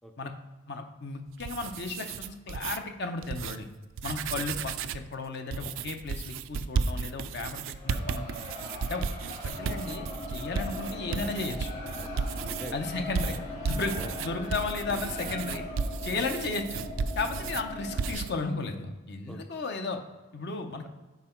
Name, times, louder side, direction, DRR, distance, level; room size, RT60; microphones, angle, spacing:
voice 1, 0.0-0.3 4.3-4.5 10.7-10.9 12.0-12.8 13.9-14.2 16.2-16.4 17.4-17.5 19.3-19.4, equal, ahead, 4 dB, 0.4 m, -46 dB
voice 2, 0.7-3.7 4.0-8.3 8.9-9.1 9.4-11.7 12.7-13.4 13.6-15.6 16.0-16.8 17.2-20.0 20.3-20.8, left 3 dB, 55° left, 5 dB, 0.8 m, -34 dB
sound 1, 1.3-2.8 3.2-3.6 3.9-5.1 5.5-12.7 13.1-17.6 18.0-18.3, right 5 dB, 75° right, 0.3 m, -34 dB
Crowd, 7.6-16.1, left 1 dB, 35° left, 1.9 m, -44 dB
sound 2, 9.5-18.1, left 1 dB, 85° left, 2.0 m, -40 dB
5.9 x 4.4 x 4.4 m, 1.2 s
head